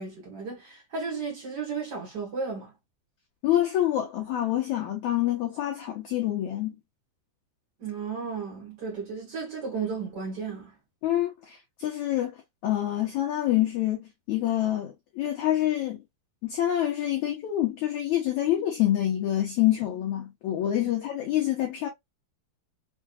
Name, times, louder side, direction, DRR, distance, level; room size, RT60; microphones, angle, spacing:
voice 1, 0.0-2.7 7.8-10.7, right 5 dB, 50° right, 1.2 m, -34 dB
voice 2, 3.4-6.8 11.0-12.3 12.6-16.0 16.4-21.9, left 13 dB, 90° left, 1.6 m, -26 dB
6.4 x 2.7 x 2.3 m
omnidirectional pair, 4.7 m